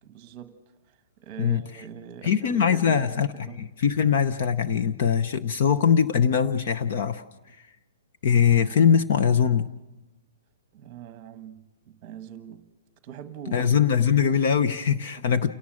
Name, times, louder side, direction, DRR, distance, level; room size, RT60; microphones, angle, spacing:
voice 1, 0.0-3.6 10.7-12.7 13.0-13.7 15.2-15.5, right 9 dB, 20° right, 1.3 m, -43 dB
voice 2, 2.2-3.3 3.6-7.2 8.2-9.7 13.5-15.5, left 7 dB, 40° left, 0.8 m, -22 dB
29.0 x 18.0 x 6.4 m
hypercardioid pair, 175°, 0 cm